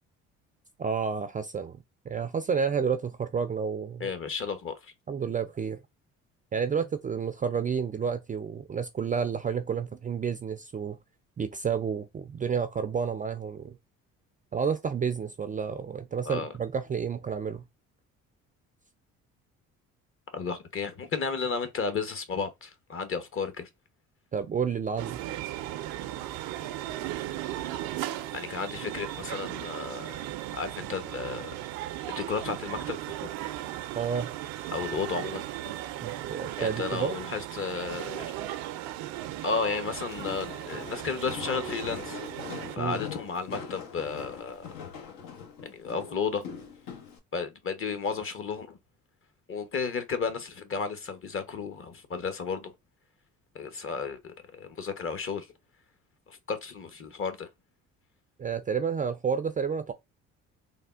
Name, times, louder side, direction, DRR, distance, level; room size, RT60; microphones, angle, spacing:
voice 1, 0.8-1.8 2.1-4.1 5.1-5.8 6.5-11.0 11.4-13.8 14.5-17.6 24.3-25.2 33.9-34.3 36.0-37.2 42.8-43.0 58.4-59.9, right 6 dB, 25° right, 0.3 m, -30 dB
voice 2, 4.0-4.9 16.3-16.5 20.3-23.7 28.3-30.2 30.5-31.5 32.1-33.0 34.7-35.5 36.6-38.3 39.4-42.2 42.7-44.6 45.6-46.5 47.3-48.8 49.5-52.7 53.5-55.5 56.3-57.5, left 5 dB, 40° left, 0.8 m, -33 dB
sound 1, 25.0-42.8, right 13 dB, 80° right, 0.5 m, -37 dB
Walk footsteps, 40.0-47.2, left 7 dB, 80° left, 0.9 m, -42 dB
3.4 x 2.1 x 2.3 m
supercardioid pair, 70°, 34 cm